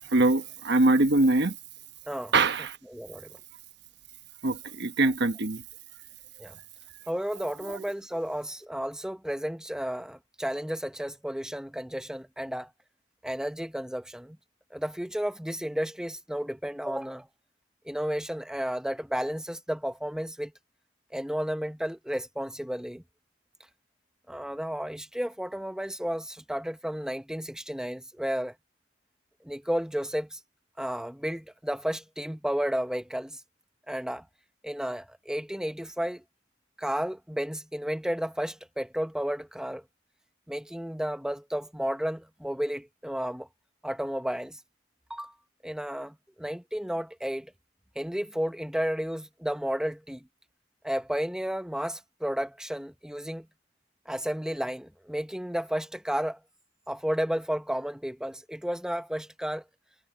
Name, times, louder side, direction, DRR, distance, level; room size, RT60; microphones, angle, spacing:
voice 1, 0.0-1.6 2.3-2.8 4.4-5.6 7.7-7.8, right 2 dB, 60° right, 1.2 m, -23 dB
voice 2, 2.9-3.3 6.4-6.6 7.1-12.7 13.2-14.4 14.7-17.3 17.9-20.5 21.1-23.0 24.3-28.5 29.4-30.4 30.8-33.4 33.9-34.2 34.6-36.2 36.8-39.8 40.5-43.5 43.8-44.6 45.1-45.3 45.6-47.5 47.9-50.2 50.8-53.5 54.1-56.4 56.9-59.6, equal, 5° right, 1.1 m, -32 dB
head